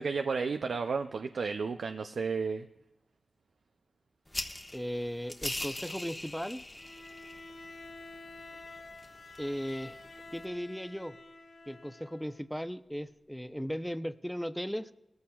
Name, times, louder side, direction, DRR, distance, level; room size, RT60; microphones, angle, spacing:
voice 1, 0.0-2.7, right 5 dB, 90° right, 6 dB, 0.4 m, -32 dB
sound 1, 4.3-10.4, left 1 dB, 30° left, 1.2 m, -43 dB
voice 2, 4.7-6.6 9.4-10.0 10.3-11.2 11.7-14.9, equal, 5° left, 12 dB, 0.6 m, -37 dB
Bowed string instrument, 6.7-12.4, left 3 dB, 75° left, 3.3 m, -49 dB
19.0 x 14.0 x 2.3 m, 0.92 s
cardioid pair, 45°, 0 cm